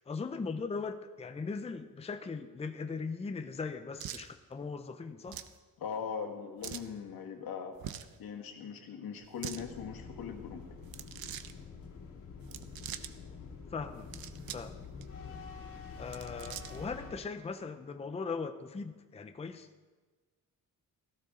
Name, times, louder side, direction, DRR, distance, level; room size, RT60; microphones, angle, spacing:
voice 1, 0.0-5.4 13.7-14.1 14.5-14.8 16.0-19.7, left 4 dB, 20° left, 8 dB, 0.6 m, -39 dB
sound 1, 4.0-4.3 5.3-5.6 6.6-6.9 7.8-8.1 9.2-9.6 10.8-11.5 12.4-13.1 13.9-14.7 15.0-15.1 16.0-16.9, right 10 dB, 80° right, 0.8 m, -43 dB
voice 2, 5.8-7.8 8.2-10.6, left 6 dB, 85° left, 3 dB, 1.9 m, -40 dB
sound 2, 9.5-17.2, left 5 dB, 65° left, 2.5 m, -47 dB
17.0 x 15.0 x 3.8 m, 1.3 s
wide cardioid pair, 170°, 35 cm